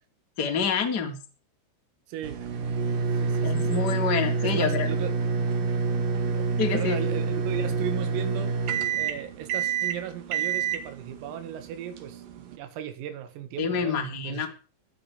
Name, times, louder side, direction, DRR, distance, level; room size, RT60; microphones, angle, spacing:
voice 1, 0.4-1.2 3.4-4.9 6.6-7.0 13.6-14.5, left 5 dB, 25° left, 2 dB, 3.3 m, -27 dB
voice 2, 2.1-2.4 3.1-3.9 4.4-5.1 6.3-8.6 9.0-14.5, right 9 dB, 85° right, 8 dB, 4.6 m, -36 dB
sound 1, 2.2-12.6, right 5 dB, 55° right, 2.9 m, -27 dB
18.0 x 12.5 x 5.2 m, 0.37 s
omnidirectional pair, 5.9 m